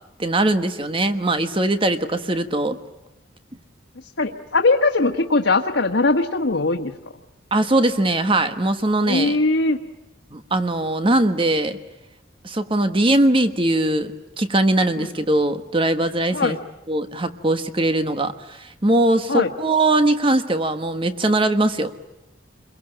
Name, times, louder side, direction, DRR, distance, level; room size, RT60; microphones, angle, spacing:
voice 1, 0.2-2.8 7.5-9.4 10.3-11.8 12.4-14.1 14.4-16.6 16.9-21.9, right 1 dB, 30° right, 9 dB, 1.3 m, -20 dB
voice 2, 4.2-6.9 9.0-9.8 15.0-15.1 16.3-16.6 19.3-19.5, left 3 dB, 80° left, 2 dB, 1.4 m, -20 dB
27.5 x 23.0 x 8.9 m, 0.96 s
head